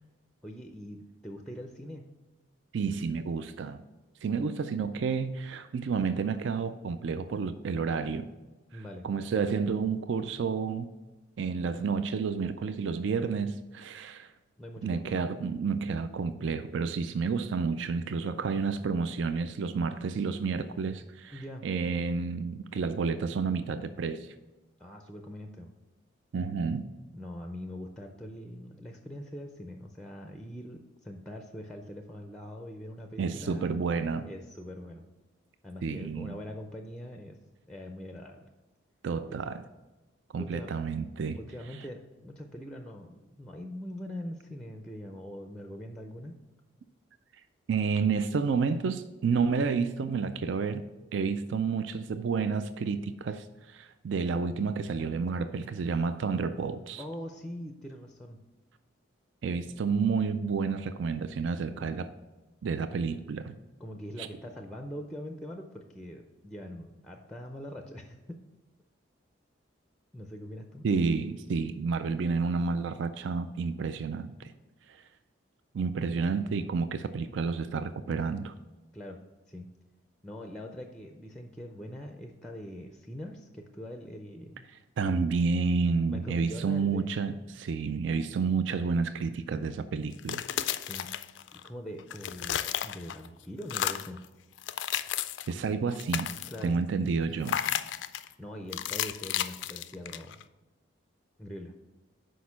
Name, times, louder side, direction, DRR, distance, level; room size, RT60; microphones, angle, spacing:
voice 1, 0.4-2.0 8.7-9.1 14.6-15.2 21.3-21.6 24.8-25.7 27.1-33.7 34.3-35.0 35.6-37.4 37.7-38.5 40.4-40.7 41.3-46.3 57.0-58.4 63.8-68.4 70.1-70.9 78.9-79.2 79.5-79.7 80.2-84.7 86.1-87.1 90.8-91.1 91.5-94.2 96.5-96.8 98.4-100.4 101.4-101.7, equal, 5° left, 0.4 m, -42 dB
voice 2, 2.7-3.8 4.2-8.3 8.7-10.9 11.4-14.3 14.8-24.3 26.3-26.9 33.2-34.3 35.8-36.4 39.0-39.6 40.3-41.4 47.7-50.8 51.1-57.0 59.4-62.1 62.6-63.6 64.2-64.3 70.8-74.5 74.9-75.0 75.7-78.5 85.0-90.4 95.5-96.3 96.6-97.6, right 5 dB, 70° right, 0.4 m, -30 dB
sound 1, 90.1-91.7 92.0-93.3 93.6-94.2 94.6-95.5 95.9-96.7 97.4-98.3 98.7-100.4, left 11 dB, 65° left, 0.3 m, -33 dB
6.3 x 5.1 x 5.8 m
head